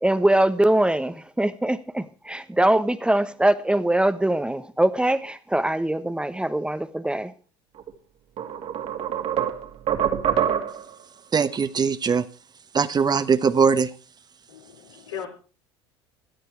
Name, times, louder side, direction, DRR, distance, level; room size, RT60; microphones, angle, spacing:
voice 1, 0.0-7.3, right 1 dB, 5° right, 12 dB, 1.2 m, -22 dB
sound 1, 7.8-7.9 8.4-10.9, right 9 dB, 50° right, 2.6 m, -25 dB
voice 2, 11.3-12.2 12.7-13.9, right 6 dB, 30° right, 13 dB, 1.1 m, -21 dB
voice 3, 14.5-15.3, left 8 dB, 85° left, 1 dB, 4.4 m, -37 dB
17.0 x 12.5 x 4.6 m, 0.35 s
hypercardioid pair, 70°, 14 cm